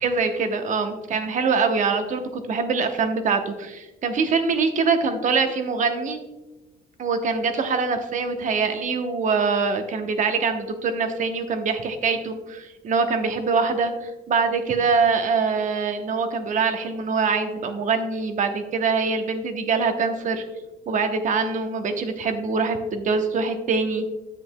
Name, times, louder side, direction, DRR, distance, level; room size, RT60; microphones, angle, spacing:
voice 1, 0.0-6.2 7.0-20.4 20.9-24.0, right 4 dB, 45° right, 7 dB, 0.9 m, -24 dB
9.9 x 7.8 x 2.2 m, 1.1 s
cardioid pair, 110°, 17 cm